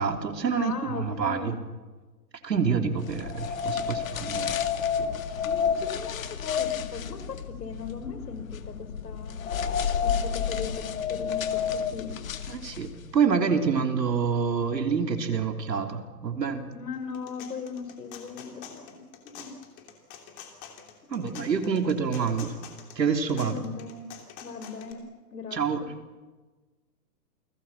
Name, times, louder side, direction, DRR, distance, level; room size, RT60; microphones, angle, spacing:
voice 1, 0.0-1.6 2.4-4.6 12.5-16.7 21.1-22.5 23.0-23.6 25.5-25.8, right 6 dB, 85° right, 5 dB, 3.5 m, -27 dB
voice 2, 0.6-1.6 5.4-9.4 10.0-12.1 16.7-18.9 19.2-19.5 21.1-21.3 23.4-24.1 24.4-25.0 25.3-25.6, left 5 dB, 75° left, 9 dB, 5.3 m, -38 dB
sound 1, 3.1-13.1, left 7 dB, 55° left, 2.1 m, -30 dB
sound 2, 16.9-24.9, left 8 dB, 20° left, 2.9 m, -46 dB
29.0 x 20.0 x 7.4 m, 1.3 s
hypercardioid pair, 155°, 49 cm